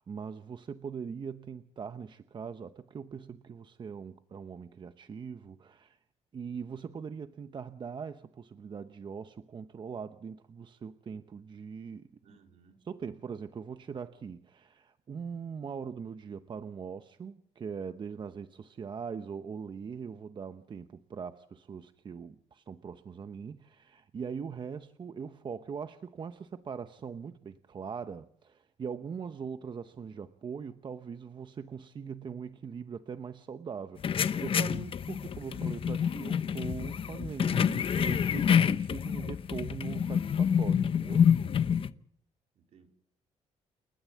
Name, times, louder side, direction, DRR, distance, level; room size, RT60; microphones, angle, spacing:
voice 1, 0.0-6.0 6.3-12.1 12.8-41.3, right 6 dB, 40° right, 0.9 m, -41 dB
voice 2, 12.2-12.8 35.1-35.8 41.8-42.1 42.5-42.9, right 5 dB, 65° right, 4.2 m, -60 dB
sound 1, 34.0-41.9, left 8 dB, 50° left, 0.8 m, -27 dB
29.5 x 12.5 x 7.4 m
cardioid pair, 115°, 12 cm